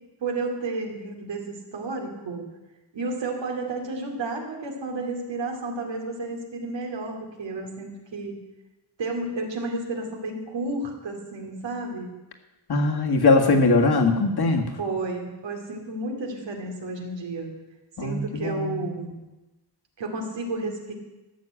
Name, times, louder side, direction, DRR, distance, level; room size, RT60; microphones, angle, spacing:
voice 1, 0.2-2.4 2.9-8.4 9.0-12.1 13.8-13.9 14.8-17.5 18.0-19.2 20.0-20.9, right 3 dB, 85° right, 2 dB, 2.7 m, -32 dB
voice 2, 12.7-14.7 18.0-18.9, left 3 dB, 60° left, 3 dB, 1.9 m, -21 dB
13.5 x 6.6 x 8.8 m, 1.1 s
wide cardioid pair, 115°, 43 cm